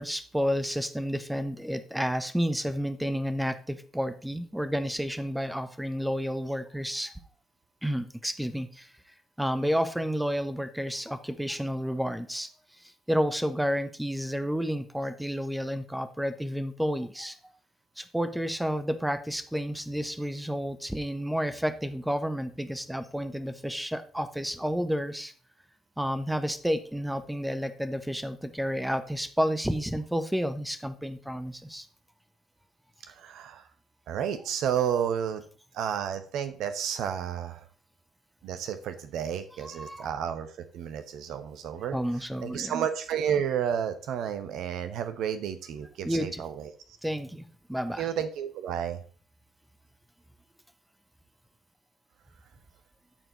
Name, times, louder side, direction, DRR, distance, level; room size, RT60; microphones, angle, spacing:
voice 1, 0.0-7.1 7.8-8.9 9.4-12.5 13.1-17.5 18.0-25.3 26.0-31.9 39.6-40.1 41.9-42.7 46.0-46.4 47.0-48.1, equal, 5° right, 11 dB, 1.0 m, -30 dB
voice 2, 33.1-33.6 34.1-35.4 35.7-37.6 38.4-42.0 42.4-46.7 48.0-49.0, right 8 dB, 65° right, 10 dB, 0.8 m, -31 dB
13.5 x 4.5 x 3.9 m, 0.41 s
figure-of-eight pair, 45°, 0 cm